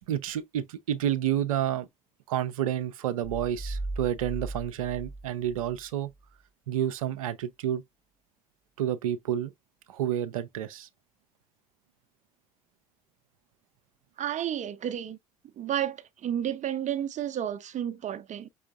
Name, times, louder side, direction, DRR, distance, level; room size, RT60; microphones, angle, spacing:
voice 1, 0.1-1.9 2.3-6.1 6.7-7.8 8.8-9.5 9.9-10.9, right 10 dB, 85° right, 0.5 m, -29 dB
sound 1, 3.2-5.9, right 2 dB, 10° left, 1.0 m, -37 dB
voice 2, 14.2-15.2 15.6-18.5, right 10 dB, 45° right, 0.6 m, -31 dB
5.5 x 3.2 x 2.3 m
hypercardioid pair, 55°, 18 cm